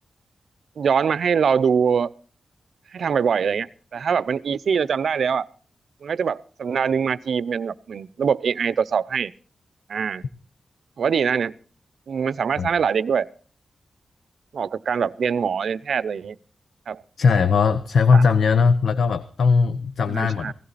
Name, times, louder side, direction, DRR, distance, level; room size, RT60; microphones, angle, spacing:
voice 1, 0.8-2.1 2.9-5.5 6.0-9.3 9.9-10.2 11.0-11.5 12.1-13.3 14.5-16.4 16.9-17.0 18.1-18.2 20.1-20.5, right 6 dB, 70° right, 18 dB, 0.7 m, -23 dB
voice 2, 17.2-20.5, left 5 dB, 80° left, 12 dB, 0.9 m, -19 dB
17.0 x 16.0 x 4.2 m, 0.41 s
wide cardioid pair, 150°, 0 cm